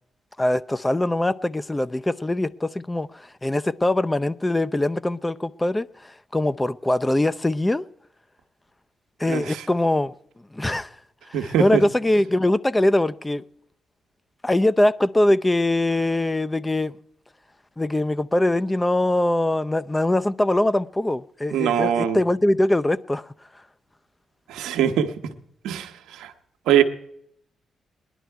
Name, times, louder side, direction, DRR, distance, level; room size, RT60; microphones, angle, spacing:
voice 1, 0.4-7.8 9.2-10.1 10.5-10.9 11.3-13.4 14.4-17.0 17.8-23.3, left 1 dB, 20° left, 0.6 m, -22 dB
voice 2, 9.3-9.6 11.3-11.6 21.5-22.2 24.5-25.1 25.6-25.9 26.2-26.3 26.7-26.8, right 10 dB, 85° right, 1.1 m, -21 dB
19.5 x 11.0 x 4.6 m
supercardioid pair, 50°, 0 cm